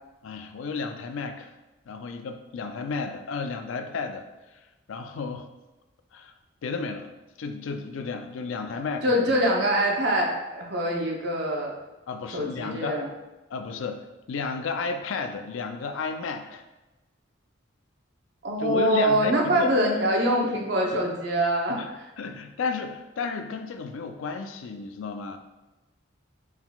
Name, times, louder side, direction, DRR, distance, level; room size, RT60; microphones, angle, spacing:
voice 1, 0.2-1.5 1.9-4.3 4.9-5.5 6.1-6.3 6.6-7.1 7.4-9.3 12.1-13.0 13.5-14.0 14.3-16.6 18.6-19.7 21.7-21.9 22.2-25.4, left 4 dB, 75° left, 7 dB, 0.4 m, -32 dB
voice 2, 9.0-11.7 12.3-13.1 18.4-22.3, equal, 55° right, -1 dB, 0.7 m, -24 dB
4.4 x 3.7 x 2.3 m, 1.1 s
head